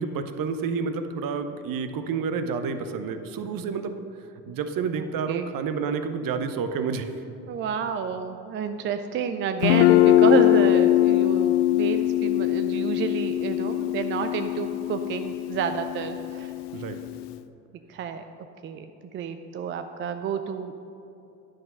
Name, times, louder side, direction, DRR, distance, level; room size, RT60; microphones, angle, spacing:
voice 1, 0.0-4.0 4.5-7.1 16.7-17.0, right 5 dB, 45° right, 9 dB, 0.8 m, -29 dB
voice 2, 5.0-5.4 7.5-16.5 17.9-18.2 18.6-18.9 19.1-20.8, right 7 dB, 25° right, 8 dB, 0.4 m, -30 dB
Guitar, 9.6-17.3, left 14 dB, 65° left, 0.6 m, -22 dB
10.5 x 6.4 x 5.6 m, 2.8 s
figure-of-eight pair, 55°, 49 cm